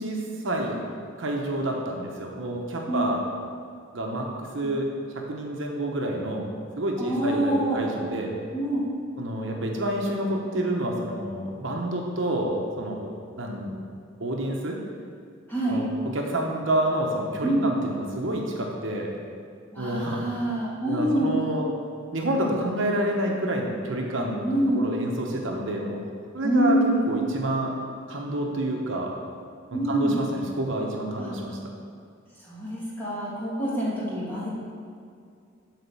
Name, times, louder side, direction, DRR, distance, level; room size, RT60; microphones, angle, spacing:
voice 1, 0.0-0.8 1.2-3.2 3.9-4.3 4.5-4.9 5.3-6.4 6.8-8.3 9.2-13.8 14.2-14.8 15.6-15.9 16.1-19.1 19.8-20.2 20.9-21.6 22.1-26.0 26.3-26.8 27.1-27.7 28.1-29.1 29.7-31.6, right 1 dB, 60° right, 0 dB, 1.0 m, -28 dB
voice 2, 7.0-7.8 8.5-8.9 15.5-15.8 17.4-17.7 19.7-21.3 24.4-24.9 26.4-27.0 29.7-30.2 31.2-31.3 32.4-34.5, right 1 dB, 10° left, -8 dB, 2.0 m, -26 dB
8.6 x 4.2 x 7.0 m, 2.3 s
head